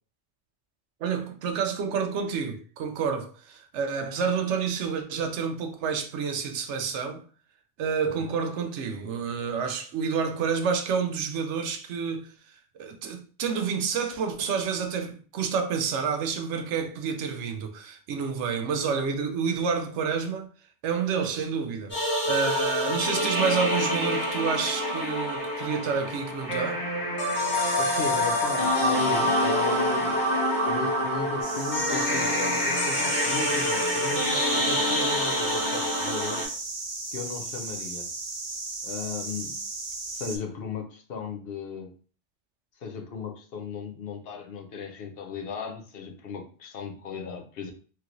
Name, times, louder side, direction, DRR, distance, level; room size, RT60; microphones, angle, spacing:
voice 1, 1.0-7.2 7.8-12.3 12.8-20.5 20.8-26.8, right 6 dB, 85° right, 0.9 m, -29 dB
sound 1, 21.9-36.4, left 1 dB, 45° left, 1.4 m, -26 dB
voice 2, 27.8-30.2 30.6-36.5 37.1-38.1 38.8-39.6 40.1-41.9 42.8-47.7, left 5 dB, 65° left, 0.8 m, -36 dB
sound 2, 31.4-40.4, right 3 dB, 50° right, 0.8 m, -35 dB
3.0 x 2.9 x 2.5 m
omnidirectional pair, 1.2 m